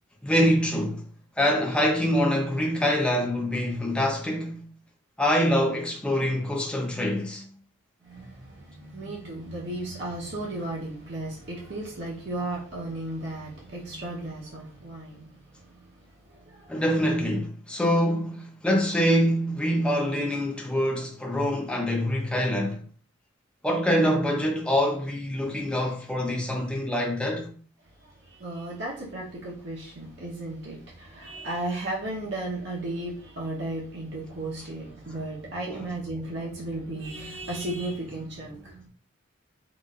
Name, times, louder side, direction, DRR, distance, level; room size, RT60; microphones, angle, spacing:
voice 1, 0.2-1.0 1.4-4.7 5.2-7.5 16.7-22.8 23.6-27.5 35.7-35.8, equal, 5° left, 0.5 m, -25 dB
voice 2, 8.0-16.8 17.1-17.3 28.0-38.9, right 2 dB, 65° right, 0.8 m, -35 dB
3.9 x 2.4 x 2.3 m
head